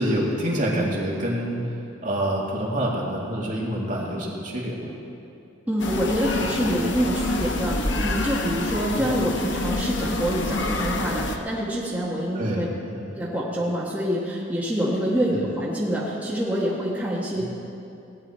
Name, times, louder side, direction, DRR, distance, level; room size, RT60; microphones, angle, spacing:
voice 1, 0.0-1.6 2.0-4.9 8.9-9.1 12.3-13.1 15.3-15.4 17.4-17.5, right 1 dB, 45° right, -4 dB, 2.2 m, -27 dB
voice 2, 5.7-12.7 13.1-17.4, equal, 10° right, -7 dB, 1.5 m, -26 dB
sound 1, 5.8-11.4, left 2 dB, 80° left, 1.0 m, -27 dB
17.5 x 9.7 x 4.4 m, 2.7 s
head